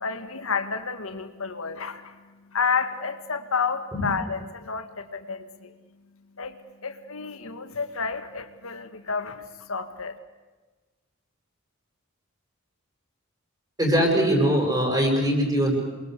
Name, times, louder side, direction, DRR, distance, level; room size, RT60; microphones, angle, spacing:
voice 1, 0.0-2.1 2.5-5.7 6.4-10.1, left 5 dB, 70° left, 9 dB, 1.8 m, -30 dB
voice 2, 13.8-15.8, equal, 20° right, 1 dB, 7.6 m, -21 dB
28.5 x 23.0 x 8.3 m, 1.3 s
head